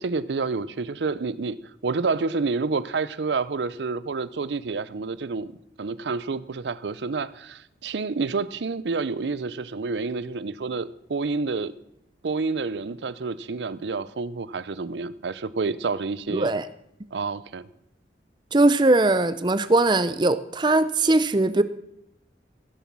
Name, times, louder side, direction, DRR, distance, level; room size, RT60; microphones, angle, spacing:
voice 1, 0.0-1.6 1.8-5.5 5.8-11.7 12.2-16.5 17.1-17.7, right 4 dB, 80° right, 16 dB, 0.6 m, -29 dB
voice 2, 16.3-16.6 18.5-21.6, right 2 dB, 25° right, 13 dB, 0.6 m, -20 dB
15.5 x 7.1 x 6.0 m, 0.79 s
head